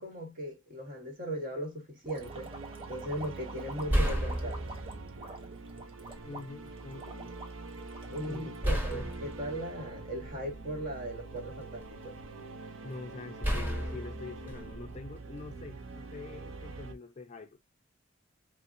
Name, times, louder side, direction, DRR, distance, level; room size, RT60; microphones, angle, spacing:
voice 1, 0.0-2.5 2.9-4.6 8.1-12.2, right 1 dB, 45° right, 1.2 m, -38 dB
sound 1, 2.0-9.4, right 2 dB, 25° right, 0.8 m, -47 dB
sound 2, 2.2-16.9, right 3 dB, 85° right, 0.6 m, -45 dB
sound 3, 3.1-3.3 3.9-5.2 6.1-6.2 8.6-10.8 11.4-12.2 13.4-15.5, equal, 10° right, 1.3 m, -33 dB
voice 2, 6.2-7.3 8.1-9.3 12.8-17.6, left 3 dB, 35° left, 0.4 m, -45 dB
4.1 x 2.0 x 2.5 m
head